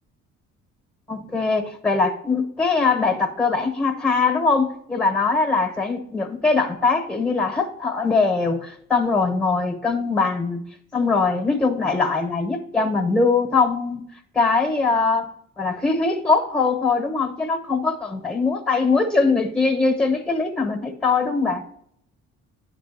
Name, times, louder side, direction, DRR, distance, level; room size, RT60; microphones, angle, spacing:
voice 1, 1.1-10.6 10.9-14.0 14.3-15.3 15.6-21.6, left 4 dB, 5° left, 5 dB, 1.0 m, -21 dB
9.5 x 3.4 x 4.1 m, 0.69 s
cardioid pair, 90°, 30 cm